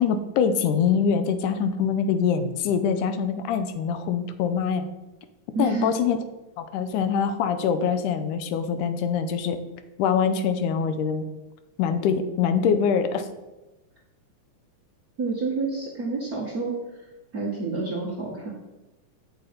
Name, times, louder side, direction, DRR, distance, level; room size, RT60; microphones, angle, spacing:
voice 1, 0.0-4.9 5.6-6.2 6.6-9.6 10.0-11.2 11.8-13.3, left 7 dB, 85° left, 10 dB, 2.3 m, -24 dB
voice 2, 5.5-5.9 15.2-16.7 17.3-18.5, right 3 dB, 45° right, -4 dB, 1.2 m, -28 dB
8.9 x 6.2 x 5.1 m, 1.1 s
omnidirectional pair, 3.5 m